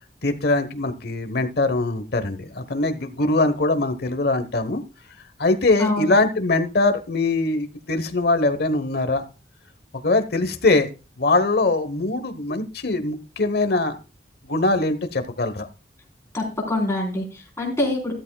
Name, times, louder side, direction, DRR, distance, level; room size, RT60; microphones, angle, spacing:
voice 1, 0.2-4.8 5.4-9.2 10.0-10.9 11.2-14.0 14.5-15.7, left 2 dB, 60° left, 9 dB, 1.1 m, -22 dB
voice 2, 16.3-18.1, left 2 dB, 15° left, 0 dB, 4.2 m, -25 dB
14.0 x 13.0 x 2.3 m, 0.31 s
head